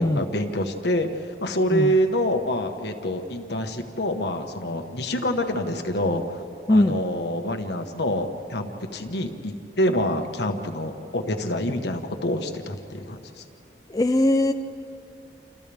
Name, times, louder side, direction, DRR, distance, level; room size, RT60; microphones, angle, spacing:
voice 1, 0.0-6.4 6.7-13.4, equal, 70° left, 5 dB, 1.4 m, -26 dB
voice 2, 13.9-14.5, left 1 dB, 20° left, 6 dB, 0.4 m, -20 dB
28.5 x 28.5 x 3.5 m, 2.7 s
head